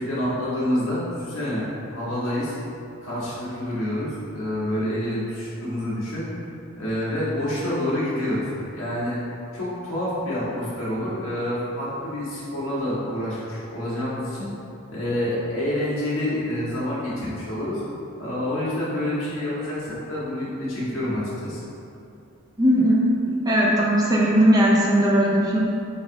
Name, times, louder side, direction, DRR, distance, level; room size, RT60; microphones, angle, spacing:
voice 1, 0.0-2.5 3.0-6.2 6.7-9.2 9.5-14.5 14.9-17.8 18.2-21.6, left 1 dB, 65° left, -9 dB, 1.4 m, -27 dB
voice 2, 22.6-23.0 23.3-25.6, equal, 15° right, -5 dB, 0.5 m, -18 dB
4.0 x 2.6 x 4.5 m, 2.7 s
head